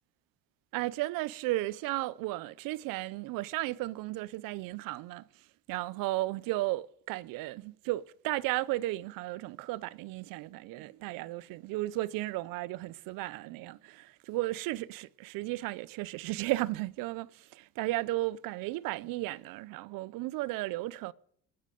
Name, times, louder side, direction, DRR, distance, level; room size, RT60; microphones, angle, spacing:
voice 1, 0.7-5.2 5.7-21.1, right 18 dB, 85° right, 0.6 m, -34 dB
25.5 x 9.5 x 5.1 m
cardioid pair, 140°, 33 cm